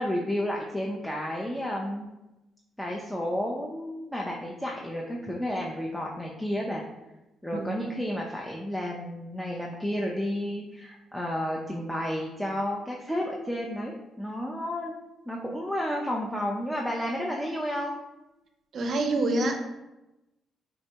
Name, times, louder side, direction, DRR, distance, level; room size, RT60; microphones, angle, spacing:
voice 1, 0.0-2.0 2.8-6.8 7.4-15.0 15.3-18.0, equal, 5° left, -2 dB, 0.4 m, -31 dB
voice 2, 18.7-19.6, right 2 dB, 55° right, 4 dB, 0.4 m, -26 dB
3.5 x 2.1 x 2.8 m, 0.98 s
cardioid pair, 90°, 0 cm